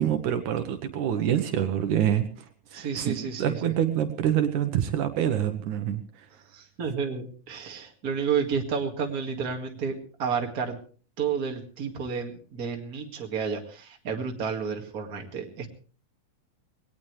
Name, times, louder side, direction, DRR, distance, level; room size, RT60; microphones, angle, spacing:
voice 1, 0.0-6.3, right 10 dB, 70° right, 8 dB, 2.5 m, -26 dB
voice 2, 2.7-3.7 6.5-10.8 11.2-15.7, right 6 dB, 30° right, 2 dB, 2.2 m, -31 dB
21.0 x 18.0 x 3.3 m, 0.40 s
omnidirectional pair, 3.7 m